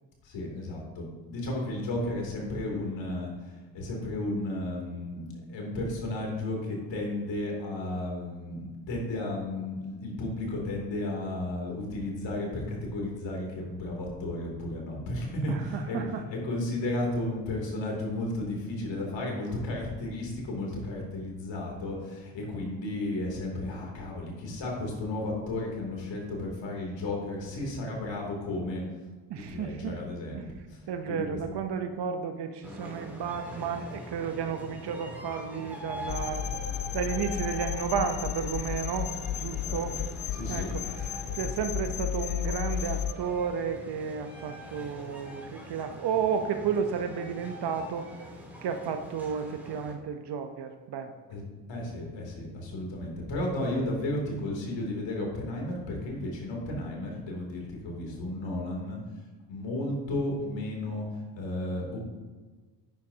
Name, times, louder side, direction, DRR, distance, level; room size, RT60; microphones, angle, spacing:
voice 1, 0.2-28.8 29.3-31.4 39.6-40.0 40.3-40.7 51.3-59.0 59.5-62.0, left 1 dB, 70° left, -1 dB, 3.2 m, -33 dB
voice 2, 15.5-16.2 29.3-30.0 30.3-30.5 30.9-36.5 36.9-40.0 40.5-48.3 48.6-51.1, right 7 dB, 60° right, 6 dB, 1.0 m, -32 dB
sound 1, 32.6-49.9, equal, 5° right, 3.1 m, -43 dB
sound 2, 36.1-43.1, left 11 dB, 50° left, 0.6 m, -33 dB
10.5 x 9.6 x 2.9 m, 1.4 s
supercardioid pair, 55°, 46 cm